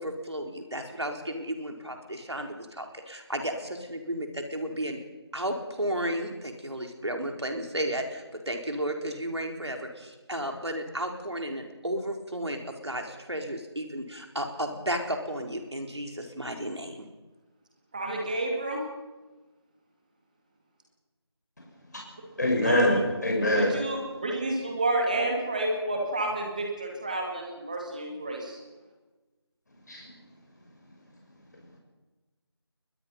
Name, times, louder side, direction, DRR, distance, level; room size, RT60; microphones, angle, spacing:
voice 1, 0.0-5.0 5.3-17.1, right 1 dB, 75° right, 3 dB, 4.3 m, -33 dB
voice 2, 17.9-18.8 22.6-23.0 23.5-28.6, right 2 dB, 15° right, 1 dB, 2.2 m, -30 dB
voice 3, 22.4-23.7 29.9-30.0, left 1 dB, 40° left, 0 dB, 5.9 m, -24 dB
21.5 x 21.5 x 5.7 m, 1.2 s
figure-of-eight pair, 170°, 14 cm